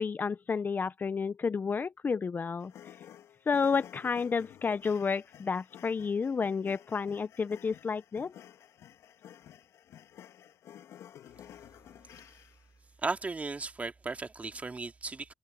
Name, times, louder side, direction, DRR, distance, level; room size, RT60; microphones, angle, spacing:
voice 1, 0.0-2.7 3.5-8.3, left 5 dB, 35° left, 0.9 m, -31 dB
sound 1, 2.6-12.8, left 10 dB, 70° left, 2.0 m, -53 dB
voice 2, 13.0-15.3, right 3 dB, 30° right, 2.6 m, -36 dB
supercardioid pair, 70°, 5 cm